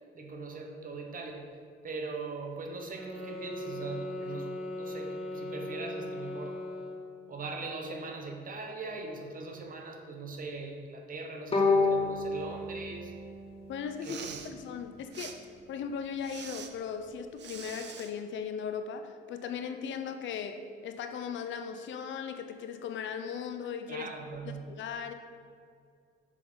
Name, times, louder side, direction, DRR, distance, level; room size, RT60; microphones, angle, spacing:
voice 1, 0.1-1.5 1.8-6.6 7.3-13.1 14.1-14.4 23.9-24.6, right 3 dB, 45° right, 3 dB, 1.0 m, -40 dB
sound 1, 2.9-7.1, left 1 dB, ahead, 1.3 m, -39 dB
Bowed string instrument, 11.5-14.6, left 3 dB, 30° left, 1.5 m, -30 dB
voice 2, 13.7-15.4 15.7-24.1 24.4-25.1, left 7 dB, 70° left, 8 dB, 0.6 m, -38 dB
Respiratory sounds, 13.9-14.5 15.1-15.3 16.2-16.7 17.4-18.1, right 7 dB, 65° right, 0.6 m, -43 dB
6.3 x 5.9 x 3.8 m, 2.2 s
cardioid pair, 90°, 20 cm